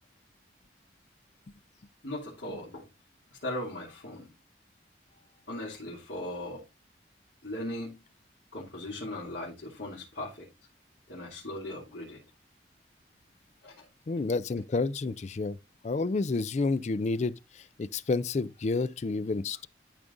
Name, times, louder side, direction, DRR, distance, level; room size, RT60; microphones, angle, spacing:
voice 1, 2.0-2.9 3.3-4.3 5.5-6.6 7.4-8.0 8.5-10.5 11.1-12.2 13.6-13.9, left 1 dB, 80° left, 2.8 m, -38 dB
voice 2, 14.1-15.6 15.8-19.7, left 3 dB, 40° left, 0.4 m, -30 dB
12.0 x 5.0 x 2.6 m
head